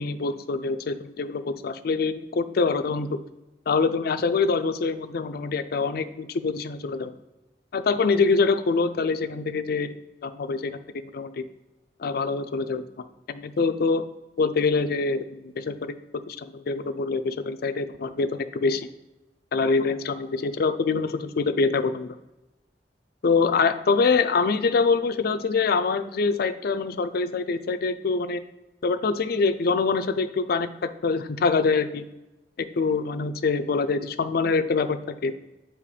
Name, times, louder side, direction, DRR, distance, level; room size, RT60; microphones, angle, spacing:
voice 1, 0.0-3.2 3.7-7.1 7.7-10.0 10.2-11.5 12.0-14.0 14.4-18.9 19.5-22.1 23.2-28.4 28.8-32.1 32.8-35.3, left 4 dB, 60° left, 10 dB, 0.4 m, -25 dB
8.4 x 3.0 x 4.9 m, 1.0 s
head